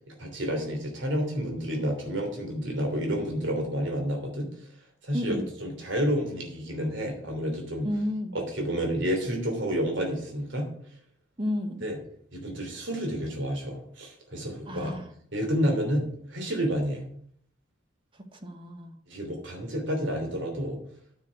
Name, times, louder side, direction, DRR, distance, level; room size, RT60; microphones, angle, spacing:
voice 1, 0.1-4.5 5.0-7.9 8.3-10.7 11.8-12.0 12.3-14.9 15.3-17.0 19.1-20.8, equal, 65° right, 2 dB, 3.1 m, -30 dB
voice 2, 5.1-5.5 7.8-8.4 11.4-11.9 14.7-15.1 18.3-19.0, left 1 dB, 25° right, 6 dB, 1.0 m, -32 dB
9.4 x 6.3 x 8.1 m, 0.62 s
head